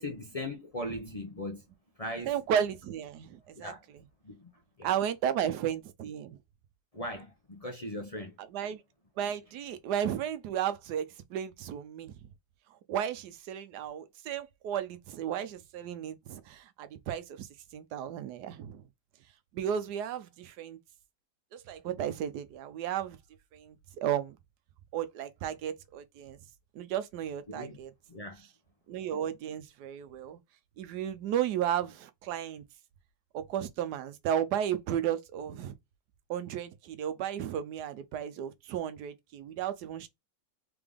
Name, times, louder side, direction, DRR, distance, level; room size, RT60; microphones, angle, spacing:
voice 1, 0.0-1.6 2.0-2.4 3.5-3.8 4.2-4.5 4.8-4.9 6.9-8.4 27.5-27.8 28.1-28.5, left 1 dB, 40° left, 0.5 m, -39 dB
voice 2, 2.3-3.7 4.8-6.4 8.5-8.8 9.2-12.2 12.9-18.8 19.5-20.8 21.5-23.2 23.5-24.4 24.9-26.4 26.7-27.9 28.9-30.4 30.8-32.6 33.3-35.7 36.3-40.1, right 9 dB, 85° right, 1.2 m, -34 dB
3.8 x 3.5 x 3.5 m
omnidirectional pair, 1.7 m